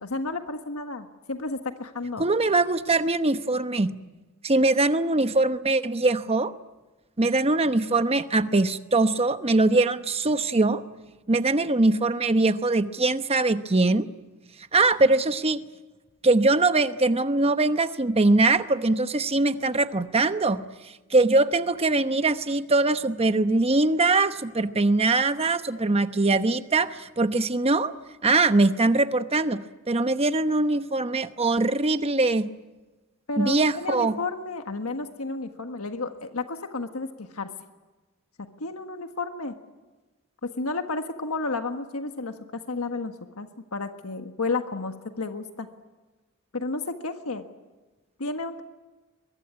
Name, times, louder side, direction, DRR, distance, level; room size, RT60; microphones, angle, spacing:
voice 1, 0.0-2.2 33.3-37.5 38.4-39.5 40.4-45.7 46.5-47.4 48.2-48.6, left 3 dB, 90° left, 6 dB, 1.5 m, -32 dB
voice 2, 2.2-3.9 4.4-6.5 7.2-10.8 11.3-14.1 14.7-15.6 16.2-20.6 21.1-27.9 28.2-29.6 29.9-32.5 33.4-34.2, right 2 dB, 30° right, 10 dB, 1.0 m, -22 dB
23.0 x 22.5 x 9.8 m, 1.2 s
head